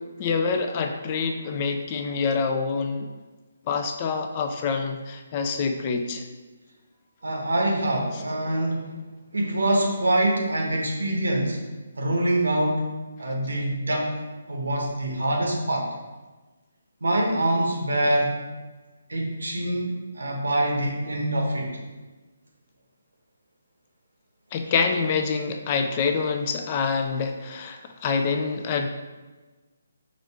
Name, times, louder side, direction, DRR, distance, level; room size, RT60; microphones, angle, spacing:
voice 1, 0.0-3.1 3.7-6.2 24.5-28.9, left 5 dB, 30° left, 5 dB, 0.4 m, -26 dB
voice 2, 7.2-8.9 9.3-11.6 12.0-14.2 14.5-15.9 17.0-18.3 19.1-21.7 24.6-24.7, right 1 dB, 80° right, 0 dB, 1.0 m, -25 dB
4.8 x 2.6 x 3.5 m, 1.3 s
figure-of-eight pair, 150°, 0 cm